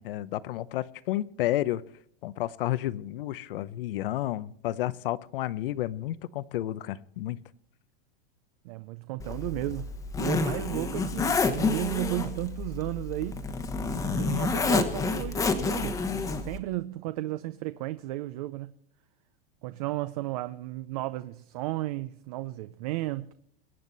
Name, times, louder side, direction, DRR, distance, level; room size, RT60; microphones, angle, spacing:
voice 1, 0.0-1.8 2.2-7.4, left 14 dB, 65° left, 0.9 m, -31 dB
voice 2, 8.6-9.9 10.2-13.4 14.2-18.7 19.6-23.3, right 16 dB, 40° right, 0.6 m, -34 dB
Zipper (clothing), 9.2-16.6, left 4 dB, 10° left, 1.1 m, -29 dB
23.0 x 9.4 x 4.1 m
supercardioid pair, 170°, 29 cm